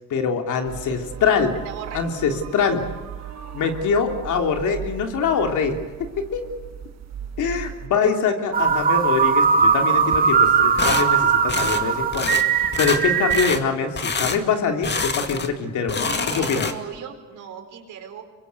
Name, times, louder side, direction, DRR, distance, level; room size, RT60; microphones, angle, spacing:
voice 1, 0.1-1.5 1.9-2.8 3.5-5.8 6.3-6.4 7.4-16.7, left 5 dB, 75° left, 4 dB, 3.3 m, -24 dB
sound 1, 0.6-7.9, right 9 dB, 60° right, 1.8 m, -37 dB
voice 2, 1.6-2.0 16.1-18.2, right 8 dB, 80° right, 5 dB, 4.7 m, -37 dB
sound 2, 8.5-13.5, right 6 dB, 30° right, 1.5 m, -19 dB
sound 3, 10.8-11.1 11.5-11.8 12.1-12.4 12.7-13.0 13.3-13.6 14.0-14.4 14.8-15.5 15.8-17.0, left 4 dB, 35° left, 2.2 m, -26 dB
26.0 x 23.0 x 8.3 m, 1.2 s
cardioid pair, 90°, 30 cm